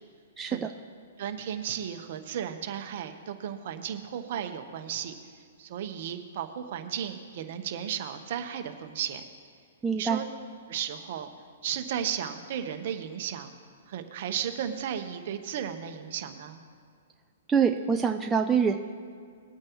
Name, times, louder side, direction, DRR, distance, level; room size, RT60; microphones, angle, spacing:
voice 1, 0.4-0.7 9.8-10.2 17.5-18.7, right 6 dB, 10° right, 3 dB, 0.4 m, -25 dB
voice 2, 1.2-5.1 5.6-9.2 9.9-10.2 10.7-11.3 11.6-13.5 13.9-16.6, right 9 dB, 50° right, 7 dB, 1.1 m, -34 dB
20.0 x 8.5 x 3.1 m, 2.1 s
hypercardioid pair, 160°, 0 cm